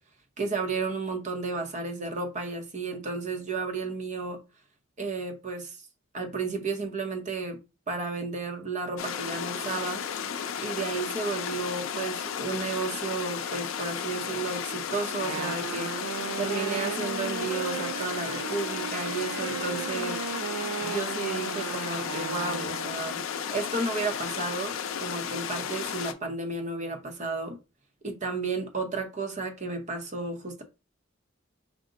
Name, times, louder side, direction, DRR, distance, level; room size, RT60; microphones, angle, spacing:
voice 1, 0.4-4.4 5.0-5.8 6.1-7.6 7.9-10.0 10.6-15.9 16.4-20.2 20.8-23.2 23.5-27.6 28.0-30.6, right 3 dB, 35° right, 0.8 m, -32 dB
sound 1, 9.0-26.1, left 7 dB, 70° left, 0.5 m, -34 dB
Wind instrument woodwind instrument, 15.1-23.1, right 7 dB, 90° right, 0.3 m, -36 dB
5.0 x 2.1 x 3.8 m
head